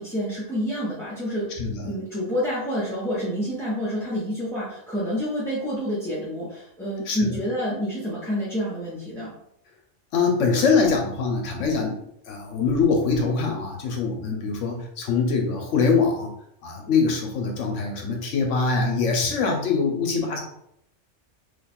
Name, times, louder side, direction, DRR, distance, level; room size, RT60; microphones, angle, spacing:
voice 1, 0.0-1.5 1.8-9.3, equal, 5° left, -11 dB, 0.7 m, -28 dB
voice 2, 1.6-1.9 7.1-7.4 10.1-12.0 12.3-16.3 16.6-20.4, left 4 dB, 75° left, 2 dB, 1.0 m, -23 dB
2.9 x 2.3 x 4.2 m, 0.74 s
omnidirectional pair, 1.3 m